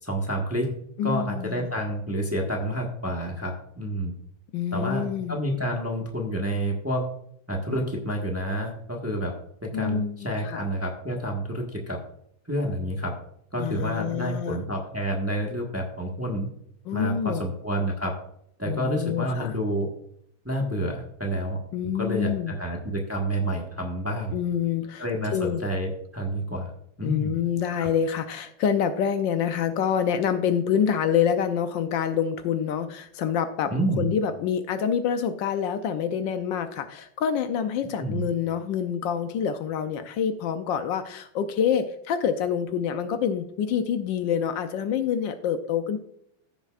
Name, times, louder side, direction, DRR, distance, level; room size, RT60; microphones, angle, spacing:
voice 1, 0.0-0.7 1.0-4.1 4.7-7.0 7.5-9.3 9.6-12.0 12.5-13.1 13.5-16.5 16.9-18.1 18.6-19.9 20.4-24.4 25.0-26.7 27.0-27.3 27.8-27.9 33.7-34.1 38.0-38.2, right 1 dB, 10° right, 0 dB, 1.0 m, -29 dB
voice 2, 1.0-1.7 4.5-5.4 9.7-10.7 13.6-14.6 16.9-17.5 18.7-19.5 21.7-22.6 24.3-25.6 27.0-46.0, left 8 dB, 75° left, 9 dB, 1.3 m, -27 dB
15.0 x 6.9 x 2.4 m, 0.71 s
omnidirectional pair, 2.1 m